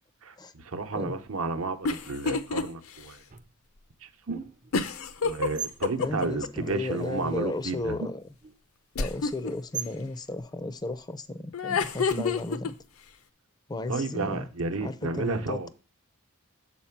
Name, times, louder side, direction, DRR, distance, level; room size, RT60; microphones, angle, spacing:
voice 1, 0.2-3.2 4.0-4.4 5.2-7.9 13.9-15.7, right 3 dB, 70° right, 0.9 m, -32 dB
sound 1, 1.8-2.6 3.0-3.1 4.7-6.5 9.0-9.5 11.5-12.7, left 4 dB, 75° left, 0.7 m, -28 dB
sound 2, 3.3-3.5 4.3-4.8 5.4-5.9 7.4-7.5 7.7-8.6 9.7-10.1 12.1-12.7, right 5 dB, 35° right, 0.5 m, -37 dB
voice 2, 6.0-8.3 9.0-12.7 13.7-14.5 14.8-15.7, left 2 dB, 20° left, 0.5 m, -34 dB
7.4 x 4.4 x 5.8 m
head